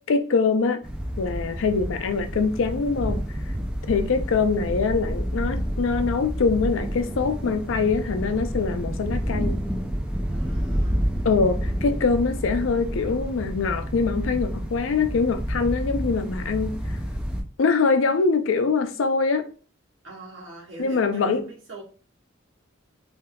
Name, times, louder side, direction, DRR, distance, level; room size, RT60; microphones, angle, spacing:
voice 1, 0.1-0.8 1.2-3.2 3.9-9.6 11.2-16.7 17.6-19.5 20.8-21.4, left 4 dB, 80° left, 0.4 m, -23 dB
sound 1, 0.8-17.4, equal, 5° right, 0.4 m, -29 dB
voice 2, 3.9-4.2 10.3-11.1 20.0-21.8, right 2 dB, 85° right, 1.3 m, -43 dB
3.4 x 2.7 x 2.2 m
head